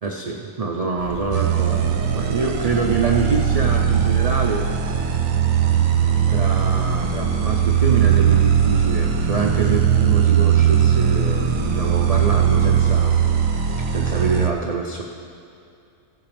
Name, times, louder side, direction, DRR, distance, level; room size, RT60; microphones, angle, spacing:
voice 1, 0.0-4.7 6.3-13.2 13.9-15.0, right 4 dB, 55° right, 1 dB, 0.4 m, -25 dB
sound 1, 1.0-13.3, equal, 25° left, 1.4 m, -34 dB
sound 2, 1.3-14.5, right 8 dB, 70° right, 1.1 m, -19 dB
15.0 x 8.5 x 3.4 m, 2.5 s
omnidirectional pair, 1.5 m